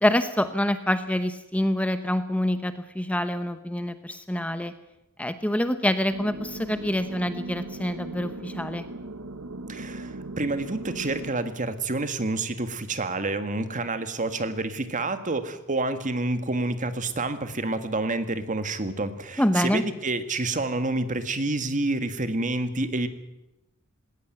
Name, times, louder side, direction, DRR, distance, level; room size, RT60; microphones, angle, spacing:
voice 1, 0.0-4.7 5.2-8.9 19.4-19.8, left 1 dB, 5° left, 10 dB, 0.9 m, -26 dB
sound 1, 6.1-11.3, right 2 dB, 90° right, 1.4 m, -38 dB
voice 2, 9.7-23.1, right 2 dB, 35° right, 10 dB, 1.8 m, -28 dB
19.5 x 18.0 x 9.1 m, 0.93 s
head